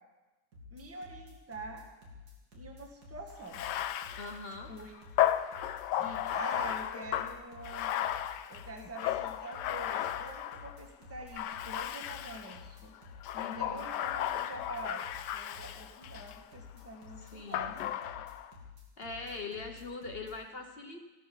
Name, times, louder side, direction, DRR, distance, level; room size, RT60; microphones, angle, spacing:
sound 1, 0.5-20.3, left 5 dB, 70° right, 3.3 m, -51 dB
voice 1, 0.7-1.8 2.5-3.6 4.7-4.9 5.9-7.9 8.5-12.9 13.3-15.0 15.3-17.8 18.1-18.2, right 2 dB, 10° right, 2 dB, 1.5 m, -45 dB
Bathtub (filling or washing), 3.4-10.8 11.3-12.6 13.2-16.4 17.5-18.5, left 11 dB, 90° left, 1.3 m, -34 dB
voice 2, 4.2-4.7 13.4-14.0 17.2-17.7 19.0-21.1, left 3 dB, 40° left, 5 dB, 1.1 m, -42 dB
16.0 x 12.5 x 5.5 m, 1.1 s
omnidirectional pair, 1.8 m